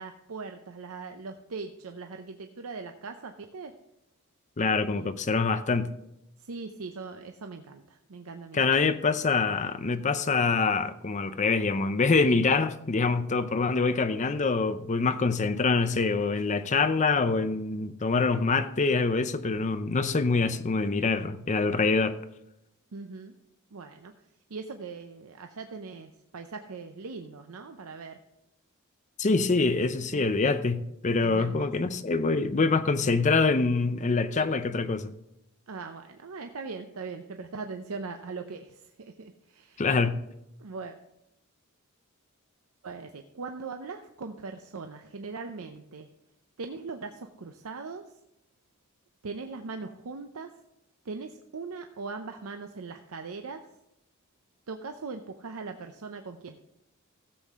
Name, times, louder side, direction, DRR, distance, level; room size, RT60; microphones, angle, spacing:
voice 1, 0.0-3.7 4.9-5.1 6.4-8.9 22.9-23.3 23.7-24.1 24.5-28.2 30.1-30.3 31.2-31.7 35.7-39.8 40.6-41.0 42.8-46.1 46.6-48.0 49.2-50.5 51.0-53.6 54.7-56.6, right 4 dB, 75° right, 0.6 m, -40 dB
voice 2, 4.6-5.9 8.5-22.2 29.2-35.1 39.8-40.2, left 4 dB, 35° left, 0.6 m, -25 dB
16.0 x 7.5 x 3.6 m
head